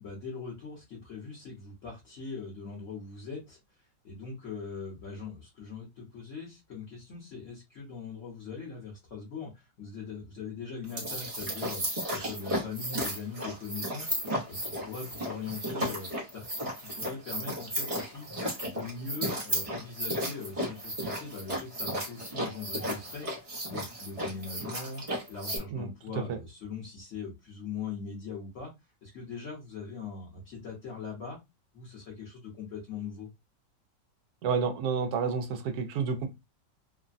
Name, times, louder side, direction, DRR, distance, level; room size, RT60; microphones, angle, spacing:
voice 1, 0.0-18.3 18.6-23.3 23.7-25.0 25.3-28.7 29.0-31.4 31.7-33.3, left 5 dB, 50° left, 1.1 m, -41 dB
sound 1, 10.9-25.6, equal, 50° right, 0.4 m, -34 dB
voice 2, 34.4-36.3, right 5 dB, 70° right, 1.0 m, -29 dB
3.1 x 2.1 x 2.5 m
omnidirectional pair, 2.0 m